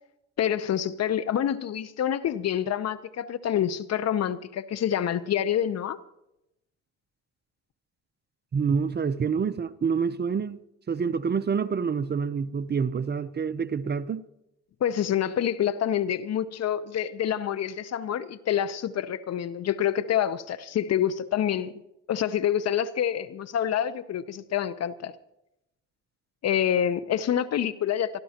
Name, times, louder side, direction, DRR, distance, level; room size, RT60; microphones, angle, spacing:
voice 1, 0.4-6.0 14.8-21.7 22.1-25.1 26.4-28.2, left 10 dB, 60° left, 0.7 m, -27 dB
voice 2, 8.5-10.6 10.9-14.3, right 6 dB, 35° right, 0.7 m, -27 dB
27.0 x 12.5 x 2.9 m
cardioid pair, 90°, 30 cm